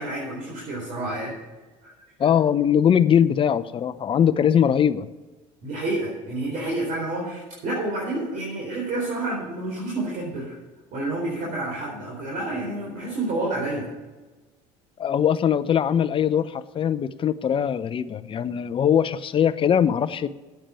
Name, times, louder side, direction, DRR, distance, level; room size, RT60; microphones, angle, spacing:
voice 1, 0.0-1.3 1.8-1.9 5.6-10.6 10.9-13.9, right 2 dB, 55° right, -4 dB, 4.2 m, -29 dB
voice 2, 2.2-5.1 13.1-13.2 15.0-20.3, left 8 dB, 35° left, 13 dB, 0.7 m, -21 dB
9.1 x 8.7 x 7.0 m, 1.2 s
supercardioid pair, 95°, 16 cm